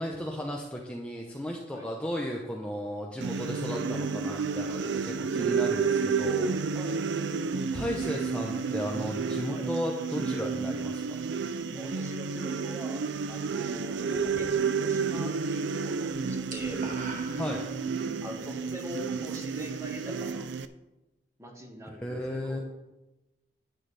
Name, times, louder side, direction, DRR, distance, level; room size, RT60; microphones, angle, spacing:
voice 1, 0.0-6.6 7.7-11.0 17.4-17.6 21.9-22.6, equal, 5° left, -1 dB, 0.9 m, -35 dB
sound 1, 3.2-20.7, right 5 dB, 70° right, 0.5 m, -31 dB
voice 2, 11.7-16.8 18.2-20.5 21.4-22.6, equal, 15° right, 1 dB, 1.7 m, -43 dB
sound 2, 14.1-15.1 15.4-15.7 16.0-18.1, right 2 dB, 45° right, 1.8 m, -43 dB
11.5 x 9.1 x 3.4 m, 1.0 s
head